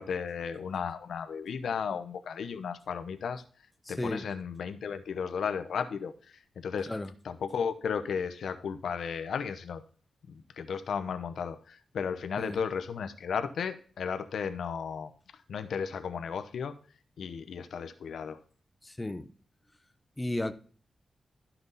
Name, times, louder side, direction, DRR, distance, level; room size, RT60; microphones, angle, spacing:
voice 1, 0.0-3.4 3.9-6.9 7.2-9.8 10.3-16.7 17.2-18.4, left 6 dB, 85° left, 0.9 m, -34 dB
voice 2, 3.9-4.3 6.9-7.1 12.4-12.6 18.8-19.3 20.2-20.5, left 1 dB, 15° left, 0.7 m, -33 dB
12.5 x 6.0 x 4.0 m
wide cardioid pair, 145°, 0 cm